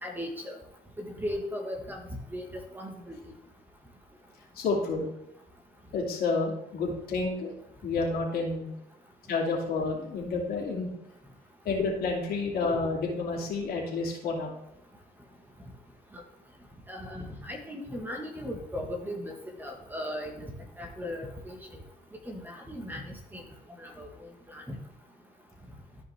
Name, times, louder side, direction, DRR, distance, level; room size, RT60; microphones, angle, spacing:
voice 1, 0.0-0.6 1.0-2.0 2.3-3.2 16.9-19.3 19.6-20.5 20.8-21.6 22.3-23.4 23.8-24.1 24.5-24.8, left 1 dB, 10° right, 2 dB, 1.4 m, -37 dB
voice 2, 4.5-5.1 5.9-7.5 7.8-8.7 9.3-10.9 11.6-14.5, left 3 dB, 65° left, -1 dB, 2.7 m, -29 dB
13.5 x 5.1 x 3.4 m, 0.80 s
cardioid pair, 110°, 17 cm